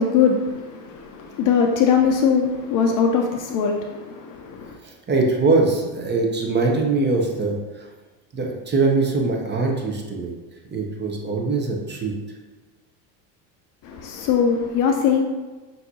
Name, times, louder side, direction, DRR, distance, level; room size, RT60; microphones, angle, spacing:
voice 1, 0.0-4.8 13.8-15.2, left 6 dB, 40° left, 3 dB, 0.5 m, -21 dB
voice 2, 4.8-7.8 8.3-10.3 10.7-12.1, right 3 dB, 20° right, 0 dB, 0.7 m, -22 dB
5.6 x 2.7 x 2.7 m, 1.2 s
hypercardioid pair, 85°, 50 cm